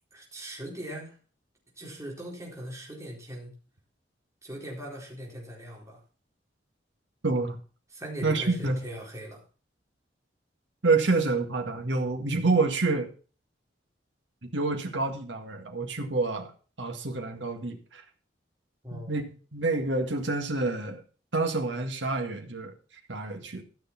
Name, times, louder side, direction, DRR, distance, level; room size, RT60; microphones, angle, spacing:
voice 1, 0.1-1.2 1.8-3.5 4.4-6.0 7.9-9.4 18.8-19.2, right 1 dB, 15° right, -2 dB, 4.0 m, -40 dB
voice 2, 7.2-7.6 8.2-8.8 10.8-13.1 14.5-16.5 16.8-18.0 18.9-21.0 21.3-22.7 23.1-23.6, right 3 dB, 85° right, 4 dB, 2.0 m, -28 dB
13.5 x 6.6 x 5.8 m, 0.38 s
head